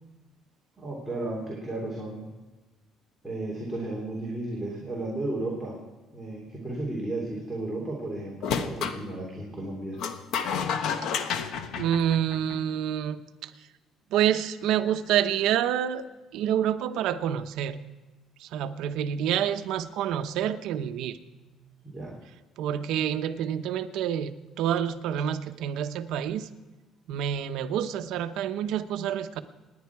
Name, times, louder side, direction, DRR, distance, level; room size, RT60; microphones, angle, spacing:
voice 1, 0.8-2.3 3.2-5.8 6.1-10.0 21.8-22.1, right 2 dB, ahead, -5 dB, 3.3 m, -34 dB
sound 1, 8.4-9.0 10.0-12.7, left 7 dB, 65° left, 1.1 m, -30 dB
voice 2, 11.7-13.5 14.1-16.1 16.3-17.8 18.4-21.2 22.6-26.5 27.1-29.4, right 10 dB, 70° right, 10 dB, 0.8 m, -28 dB
26.5 x 10.5 x 4.7 m, 1.2 s
cardioid pair, 145°, 0 cm